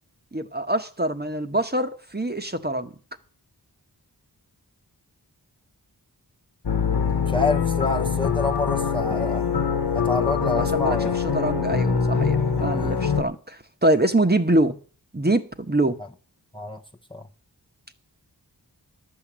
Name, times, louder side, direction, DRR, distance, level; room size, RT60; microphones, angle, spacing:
voice 1, 0.3-2.9 10.6-14.7 15.1-16.0, right 1 dB, 25° right, 1.2 m, -24 dB
sound 1, 6.7-13.2, left 6 dB, 80° left, 1.3 m, -23 dB
voice 2, 7.3-9.5 9.9-11.2 16.5-16.8 17.1-17.3, left 2 dB, 15° left, 0.9 m, -27 dB
12.0 x 6.9 x 7.4 m
wide cardioid pair, 45°, 40 cm